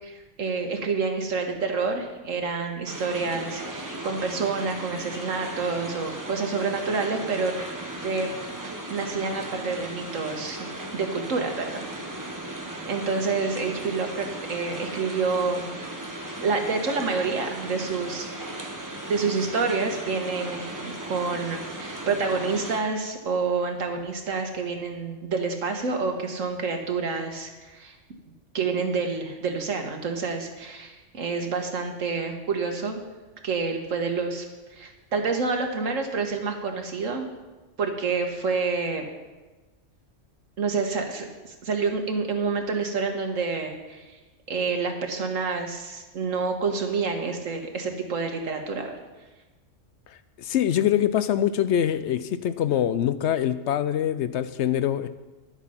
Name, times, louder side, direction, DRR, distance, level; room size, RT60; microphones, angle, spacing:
voice 1, 0.0-7.5 8.0-8.3 8.9-10.7 10.9-11.9 12.5-12.6 12.9-15.9 16.4-18.7 19.1-28.0 28.5-33.0 33.4-34.5 34.7-37.3 37.8-39.1 40.6-44.2 44.5-49.0, right 4 dB, 85° right, 4 dB, 1.7 m, -28 dB
sound 1, 2.9-22.8, right 1 dB, 15° right, 1.1 m, -36 dB
voice 2, 50.4-55.1, left 10 dB, 70° left, 13 dB, 0.8 m, -24 dB
11.0 x 8.2 x 5.7 m, 1.2 s
omnidirectional pair, 1.3 m